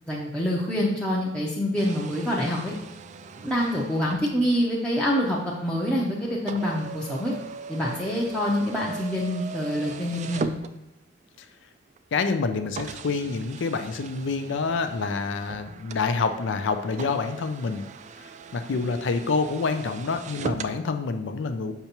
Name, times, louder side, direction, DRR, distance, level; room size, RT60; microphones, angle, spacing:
voice 1, 0.1-2.7 3.4-7.3 7.7-10.5, equal, 5° left, -5 dB, 0.6 m, -26 dB
sound 1, 1.8-11.3 12.0-12.1 12.8-20.8, right 5 dB, 40° right, 0.3 m, -39 dB
voice 2, 12.1-17.8 18.2-21.7, left 4 dB, 65° left, 8 dB, 0.4 m, -27 dB
6.7 x 5.7 x 2.9 m, 0.87 s
head